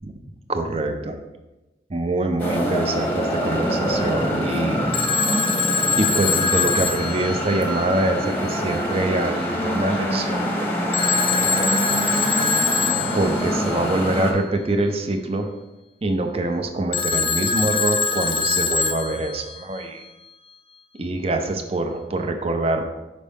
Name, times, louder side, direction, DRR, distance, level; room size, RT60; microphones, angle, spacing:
voice 1, 0.5-1.2 1.9-4.8 6.0-10.5 10.8-11.7 13.1-15.5 16.0-20.0 21.0-22.8, right 2 dB, 35° right, 6 dB, 0.5 m, -25 dB
sound 1, 2.4-14.3, equal, 10° left, 0.8 m, -25 dB
Telephone, 4.9-8.0 10.9-13.5 16.9-19.6, left 5 dB, 30° left, 0.3 m, -23 dB
5.4 x 5.1 x 3.4 m, 1.0 s
head